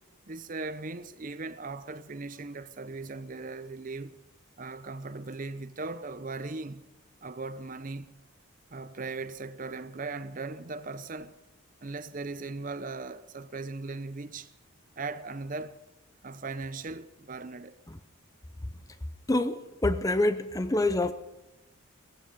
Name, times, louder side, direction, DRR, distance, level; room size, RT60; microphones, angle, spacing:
voice 1, 0.3-4.2 4.6-6.8 7.2-8.1 8.7-11.4 11.8-14.5 15.0-15.8 16.2-17.7, right 3 dB, 40° right, 0.7 m, -38 dB
voice 2, 19.3-21.1, left 2 dB, 15° left, 0.6 m, -26 dB
17.0 x 15.5 x 5.2 m
head